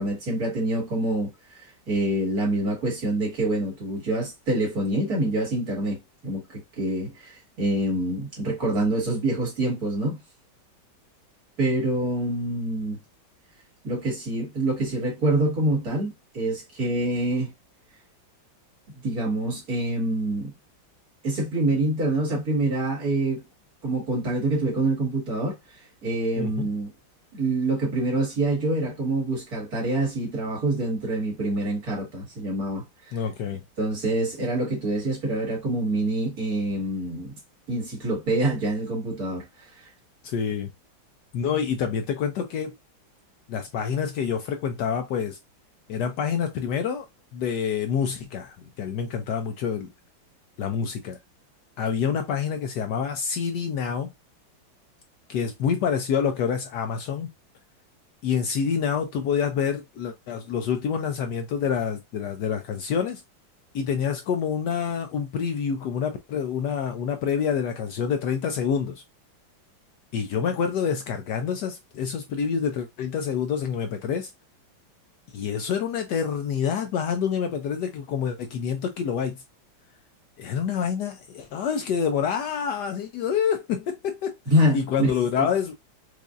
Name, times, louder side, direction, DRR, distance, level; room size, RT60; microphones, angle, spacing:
voice 1, 0.0-6.0 6.2-10.2 11.6-13.0 13.8-17.5 19.0-20.5 21.2-23.4 23.8-25.5 26.0-26.9 27.3-33.2 33.8-37.3 37.7-39.9 84.5-85.1 85.4-85.5, right 1 dB, 50° right, 2.2 m, -26 dB
voice 2, 26.4-26.7 33.1-33.6 40.2-40.7 41.3-42.7 43.5-45.4 45.9-47.1 47.3-49.9 50.6-51.2 51.8-54.1 55.3-57.3 58.2-63.2 63.7-69.0 70.1-74.3 75.3-79.4 80.4-84.4 84.7-85.7, left 7 dB, 70° left, 1.0 m, -27 dB
4.7 x 2.6 x 2.4 m
omnidirectional pair, 2.1 m